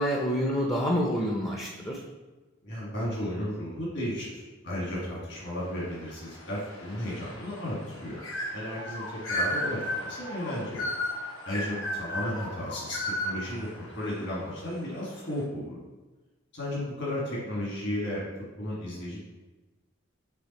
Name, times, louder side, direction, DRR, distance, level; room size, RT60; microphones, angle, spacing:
voice 1, 0.0-2.0, equal, 15° left, -1 dB, 0.5 m, -27 dB
voice 2, 2.6-8.2 8.5-10.9 11.4-15.8 16.5-18.2 18.6-19.3, left 1 dB, 60° left, -6 dB, 1.7 m, -34 dB
sound 1, 5.8-14.8, left 1 dB, 75° left, 1.2 m, -35 dB
6.8 x 3.5 x 4.1 m, 1.2 s
head